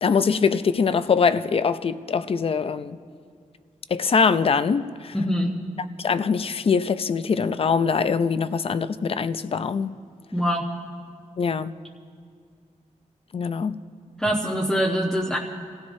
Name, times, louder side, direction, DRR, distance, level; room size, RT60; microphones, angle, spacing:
voice 1, 0.0-3.0 3.9-5.1 6.0-9.9 11.4-11.7 13.3-13.8, left 5 dB, 45° left, 0.5 m, -23 dB
voice 2, 5.1-5.6 10.3-10.7 14.2-15.4, equal, 5° left, 0.9 m, -24 dB
29.5 x 16.0 x 2.7 m
wide cardioid pair, 130°, 14 cm